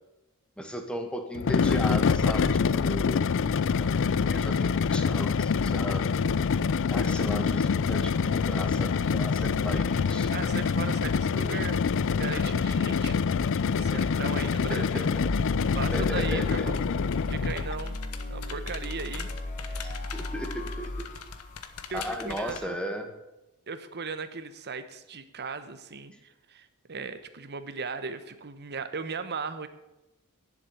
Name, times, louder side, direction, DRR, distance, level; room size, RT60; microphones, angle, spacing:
voice 1, 0.6-3.3 3.7-6.1 6.9-10.3 14.7-15.3 15.9-16.7 19.8-21.1 21.9-23.1 26.1-26.2, equal, 5° left, 4 dB, 1.6 m, -36 dB
sound 1, 1.4-17.8, left 5 dB, 60° left, 0.4 m, -26 dB
voice 2, 10.3-13.4 13.7-15.1 15.6-16.9 17.1-18.0 18.3-19.3 19.7-20.0 21.9-22.8 23.7-29.7, right 4 dB, 50° right, 11 dB, 1.1 m, -37 dB
sound 2, 15.2-22.2, left 1 dB, 35° left, 1.1 m, -36 dB
sound 3, 15.4-22.6, left 6 dB, 90° left, 1.1 m, -44 dB
11.0 x 7.5 x 9.4 m, 0.97 s
head